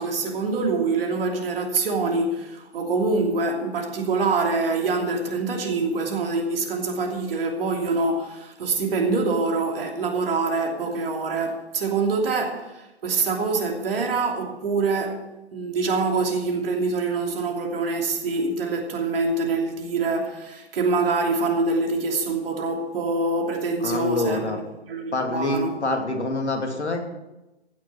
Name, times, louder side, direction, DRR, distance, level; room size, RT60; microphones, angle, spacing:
voice 1, 0.0-15.2 15.5-24.5 24.9-25.7, right 3 dB, 60° right, 2.9 m, -25 dB
voice 2, 23.8-24.6 25.1-27.0, left 2 dB, 85° left, 2.6 m, -26 dB
15.5 x 6.6 x 7.3 m
figure-of-eight pair, 120°, 33 cm